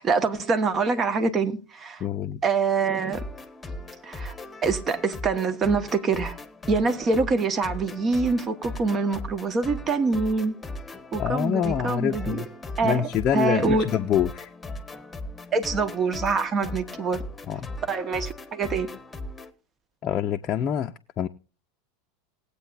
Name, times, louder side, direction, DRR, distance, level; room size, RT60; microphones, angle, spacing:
voice 1, 0.0-2.0 2.4-3.2 4.0-4.3 4.6-6.4 6.7-10.5 11.1-12.4 12.8-13.9 15.5-17.2 17.9-18.9, right 4 dB, 30° right, 1.4 m, -25 dB
voice 2, 2.0-2.4 11.2-12.5 12.8-14.5 17.5-17.7 20.0-21.3, left 9 dB, 35° left, 0.6 m, -26 dB
sound 1, 3.0-19.5, left 2 dB, 15° left, 1.2 m, -38 dB
20.0 x 8.4 x 2.6 m
hypercardioid pair, 85°, 0 cm